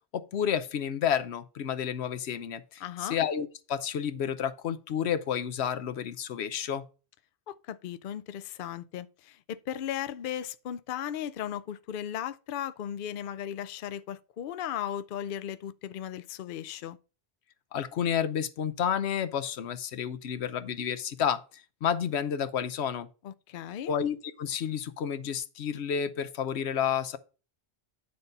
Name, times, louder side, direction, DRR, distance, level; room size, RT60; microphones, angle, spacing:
voice 1, 0.1-6.8 17.7-21.4 21.8-23.1 23.9-27.2, left 8 dB, 90° left, 1.0 m, -30 dB
voice 2, 2.8-3.2 7.5-17.0 23.2-23.9, left 10 dB, 60° left, 0.7 m, -36 dB
9.7 x 4.0 x 5.2 m
omnidirectional pair, 1.1 m